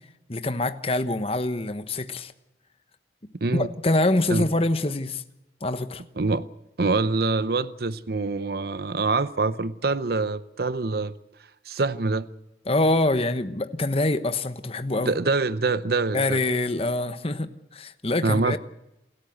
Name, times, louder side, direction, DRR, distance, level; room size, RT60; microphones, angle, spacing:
voice 1, 0.3-2.3 3.5-5.2 5.6-6.0 12.7-15.1 16.1-18.6, left 2 dB, 35° left, 1.1 m, -25 dB
voice 2, 6.2-6.5 6.8-11.1 11.7-12.3 15.1-16.4 18.2-18.6, right 3 dB, 60° right, 0.7 m, -25 dB
28.5 x 13.5 x 8.0 m
head